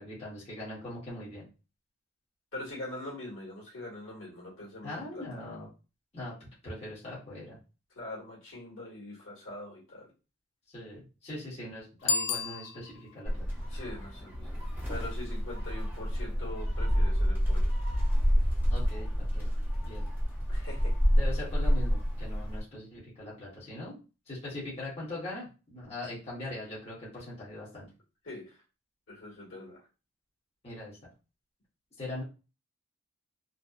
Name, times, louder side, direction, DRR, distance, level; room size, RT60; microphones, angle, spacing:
voice 1, 0.0-1.4 4.8-5.7 6.1-6.3 6.6-7.6 10.7-13.4 18.7-19.5 19.8-20.0 21.2-24.0 24.3-27.9 30.6-31.1 32.0-32.2, left 1 dB, 30° left, -8 dB, 1.0 m, -41 dB
voice 2, 2.5-5.2 7.9-10.1 13.7-14.6 14.9-17.7 20.5-20.9 28.2-28.6 29.1-29.8, left 1 dB, 80° left, -4 dB, 1.4 m, -43 dB
Bicycle bell, 12.0-13.2, left 6 dB, 65° left, 0.4 m, -32 dB
Gull seagull, 13.3-22.6, equal, 10° right, 0.6 m, -28 dB
2.6 x 2.0 x 2.3 m, 0.31 s
head